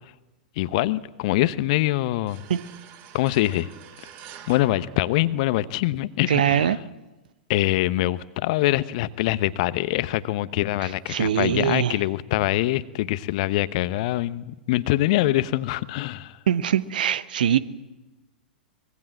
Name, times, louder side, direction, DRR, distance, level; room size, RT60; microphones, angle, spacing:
voice 1, 0.6-2.4 3.1-3.7 4.5-6.7 7.5-16.4, left 16 dB, 50° left, 16 dB, 0.9 m, -24 dB
sound 1, 2.3-5.8, right 9 dB, 40° right, 2.3 m, -47 dB
voice 2, 6.3-6.8 10.8-12.0 16.5-17.6, right 9 dB, 60° right, 15 dB, 1.1 m, -22 dB
24.5 x 21.5 x 7.5 m, 1.1 s
figure-of-eight pair, 95°, 5 cm